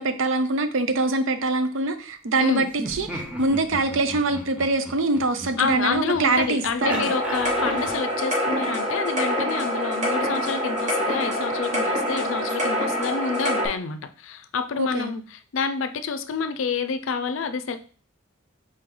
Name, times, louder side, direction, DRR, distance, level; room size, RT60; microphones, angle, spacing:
voice 1, 0.0-7.1 14.8-15.1, right 2 dB, 65° right, 9 dB, 0.6 m, -24 dB
Laughter, 2.7-8.1, right 1 dB, 5° right, 0.8 m, -37 dB
voice 2, 5.6-17.8, left 5 dB, 70° left, 10 dB, 0.4 m, -28 dB
sound 1, 6.8-13.7, equal, 35° right, 1.1 m, -25 dB
4.3 x 3.0 x 3.8 m, 0.41 s
head